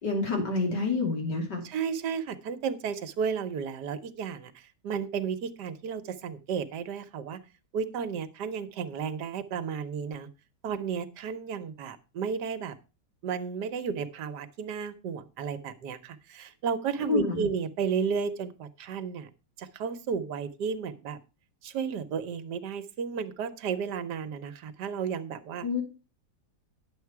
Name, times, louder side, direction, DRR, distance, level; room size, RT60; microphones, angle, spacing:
voice 1, 0.0-1.6 17.1-17.5 25.6-25.8, left 3 dB, 80° left, 1 dB, 3.5 m, -28 dB
voice 2, 1.6-7.4 7.7-10.3 10.6-12.8 13.2-19.3 19.6-21.2 21.6-25.7, right 6 dB, 75° right, 11 dB, 1.5 m, -33 dB
10.5 x 7.3 x 4.7 m, 0.31 s
omnidirectional pair, 1.8 m